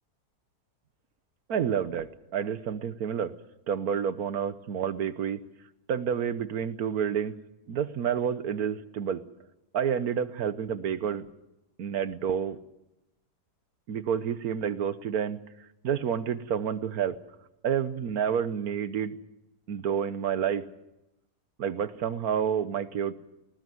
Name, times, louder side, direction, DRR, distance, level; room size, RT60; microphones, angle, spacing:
voice 1, 1.5-3.3 3.7-5.4 5.9-7.3 7.7-9.2 9.7-11.3 11.8-12.6 13.9-15.4 15.8-17.2 17.6-19.2 19.7-20.6 21.6-23.1, right 8 dB, 65° right, 14 dB, 1.4 m, -29 dB
20.0 x 18.5 x 7.8 m, 0.92 s
omnidirectional pair, 1.7 m